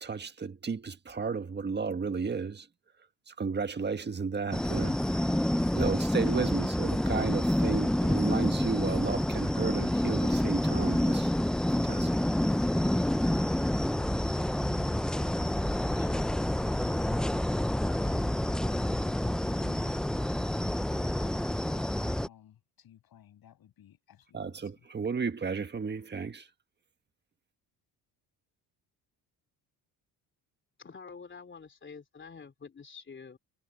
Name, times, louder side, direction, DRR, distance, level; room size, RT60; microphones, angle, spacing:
voice 1, 0.0-2.7 3.3-5.4 5.7-11.3 11.8-12.1 24.3-26.5, right 5 dB, 25° right, 1.6 m, -33 dB
sound 1, 4.5-22.3, left 1 dB, ahead, 0.3 m, -28 dB
voice 2, 13.9-18.3 18.7-24.7, left 11 dB, 60° left, 7.7 m, -56 dB
voice 3, 30.8-33.4, left 5 dB, 30° left, 2.9 m, -47 dB
cardioid pair, 110°, 40 cm